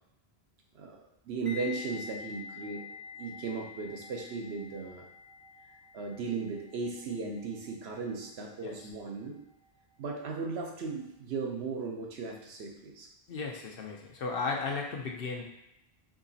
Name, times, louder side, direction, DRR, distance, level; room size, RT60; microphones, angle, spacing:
voice 1, 1.3-2.9 3.2-5.1 5.9-9.4 10.0-13.1, right 4 dB, 80° right, 2 dB, 0.9 m, -36 dB
sound 1, 1.5-10.4 10.7-11.0, left 6 dB, 20° right, 0.9 m, -48 dB
voice 2, 13.3-15.4, left 4 dB, 65° left, 0 dB, 0.9 m, -35 dB
5.0 x 2.9 x 2.7 m, 0.84 s
omnidirectional pair, 1.1 m